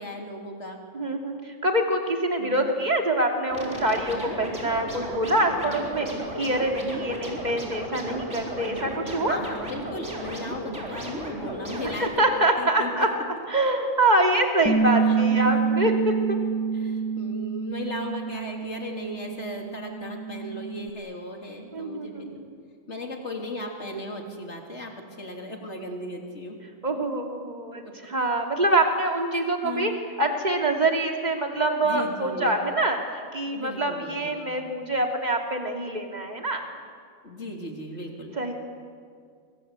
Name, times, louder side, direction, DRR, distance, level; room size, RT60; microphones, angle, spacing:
voice 1, 0.0-0.8 2.4-2.7 9.3-13.2 15.0-15.2 15.4-15.7 16.4-22.4 22.9-26.6 27.8-27.9 29.3-30.1 31.8-32.6 33.5-34.5 37.2-38.6, left 1 dB, 55° left, 2 dB, 3.6 m, -37 dB
voice 2, 0.9-9.4 12.0-13.1 13.5-16.4 21.7-22.5 26.8-29.9 30.2-36.7 38.4-38.6, right 1 dB, 30° right, 3 dB, 2.9 m, -25 dB
sound 1, 3.5-12.0, right 1 dB, 60° right, 4.8 m, -35 dB
Bass guitar, 14.7-20.9, right 5 dB, 10° left, 1.1 m, -27 dB
25.0 x 24.5 x 8.3 m, 2.1 s
omnidirectional pair, 1.4 m